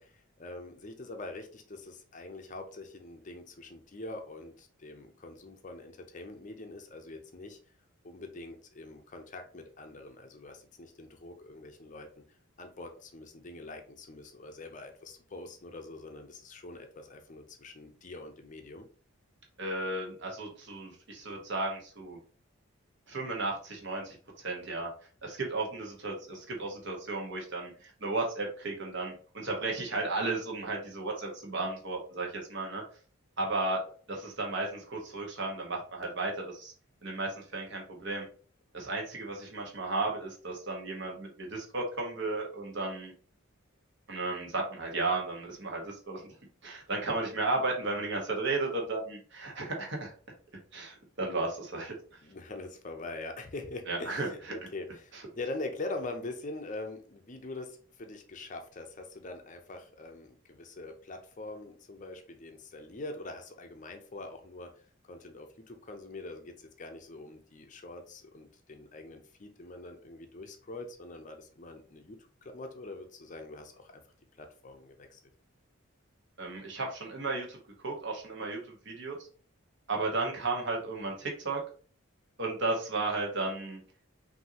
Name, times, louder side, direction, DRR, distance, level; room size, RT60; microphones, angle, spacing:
voice 1, 0.0-7.6 8.0-12.2 12.6-18.9 52.2-74.0 74.4-75.2, left 2 dB, 35° left, 5 dB, 0.6 m, -44 dB
voice 2, 19.6-22.2 23.1-24.9 25.2-32.8 33.4-33.8 34.1-36.7 37.0-38.2 38.7-43.1 44.1-46.2 46.6-50.1 50.7-51.9 53.9-54.3 76.4-77.6 77.8-79.1 79.9-81.6 82.4-83.8, right 3 dB, 55° right, 0 dB, 1.2 m, -34 dB
5.5 x 2.7 x 2.8 m, 0.42 s
head